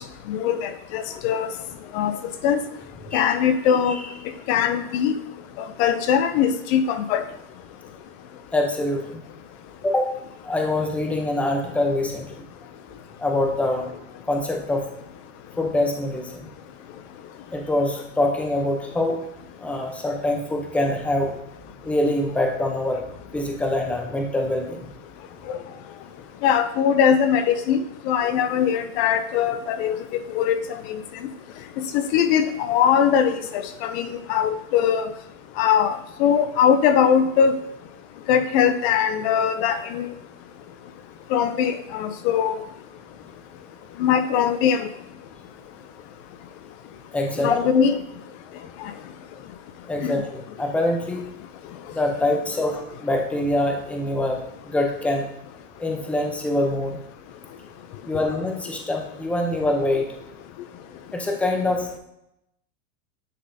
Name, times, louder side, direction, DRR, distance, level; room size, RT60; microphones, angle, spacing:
voice 1, 0.3-1.5 1.9-2.2 2.4-2.6 3.1-4.0 4.5-5.2 5.8-7.2 25.5-25.6 26.4-30.0 30.3-30.6 30.9-31.0 31.9-35.1 35.6-37.6 38.3-40.1 41.3-42.6 44.0-44.9 47.4-48.0 50.0-50.1, left 8 dB, 55° left, 10 dB, 0.5 m, -21 dB
voice 2, 8.5-9.2 9.8-10.1 10.4-12.4 13.2-13.9 14.2-14.8 15.6-16.5 17.5-19.2 19.6-21.3 21.8-23.0 23.3-24.9 47.1-47.9 49.9-51.2 51.9-55.2 55.8-57.0 58.0-60.1 61.1-62.0, left 1 dB, 5° left, 2 dB, 0.6 m, -24 dB
9.9 x 3.8 x 2.7 m, 0.81 s
supercardioid pair, 135°, 40 cm